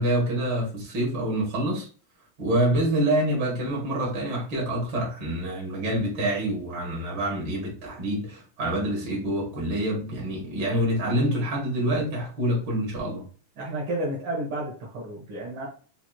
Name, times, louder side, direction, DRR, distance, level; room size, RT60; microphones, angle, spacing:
voice 1, 0.0-1.9 2.4-13.2, right 1 dB, 45° right, 1.5 m, -26 dB
voice 2, 13.6-15.7, right 1 dB, 70° right, 1.2 m, -31 dB
6.0 x 2.9 x 2.3 m
omnidirectional pair, 3.9 m